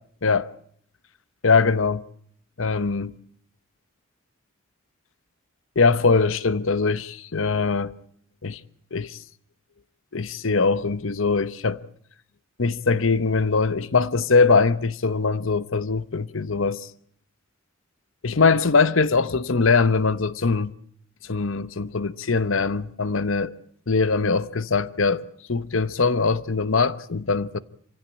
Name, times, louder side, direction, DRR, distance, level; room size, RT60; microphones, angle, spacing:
voice 1, 1.4-2.0 2.6-3.1 5.8-7.9 8.4-8.6 8.9-9.2 10.1-11.8 12.6-16.8 18.2-20.7 21.3-23.5 23.9-25.2 25.5-27.6, left 4 dB, 70° left, 0.9 m, -22 dB
27.0 x 16.5 x 8.8 m
head